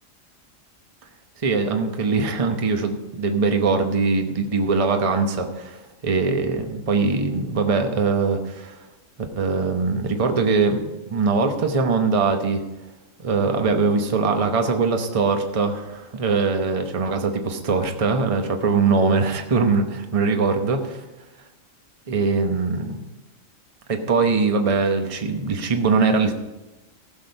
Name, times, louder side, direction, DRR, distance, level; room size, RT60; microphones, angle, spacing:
voice 1, 1.4-8.8 9.4-12.6 13.2-20.8 22.1-23.0 23.9-26.3, right 4 dB, 30° right, 5 dB, 0.9 m, -22 dB
15.5 x 6.4 x 5.3 m, 1.0 s
omnidirectional pair, 1.4 m